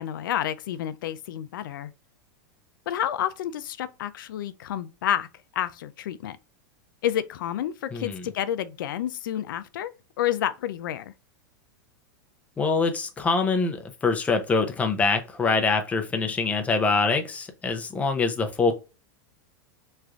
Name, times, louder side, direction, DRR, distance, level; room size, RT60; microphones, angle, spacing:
voice 1, 0.0-1.9 2.9-5.3 5.5-6.4 7.0-9.9 10.2-11.1, left 11 dB, 80° left, 0.4 m, -29 dB
voice 2, 7.9-8.3 12.6-13.8 14.0-18.7, left 4 dB, 15° left, 0.5 m, -24 dB
3.2 x 2.5 x 3.4 m
supercardioid pair, 135°, 11 cm